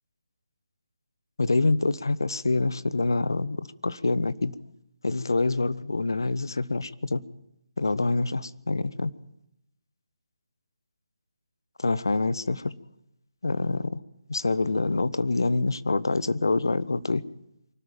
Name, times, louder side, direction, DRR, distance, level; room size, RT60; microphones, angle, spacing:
voice 1, 1.4-4.6 5.0-7.2 7.8-9.1 11.8-12.7 13.4-14.0 14.3-17.2, left 3 dB, 60° left, 1.0 m, -26 dB
24.0 x 12.5 x 9.0 m
figure-of-eight pair, 150°, 2 cm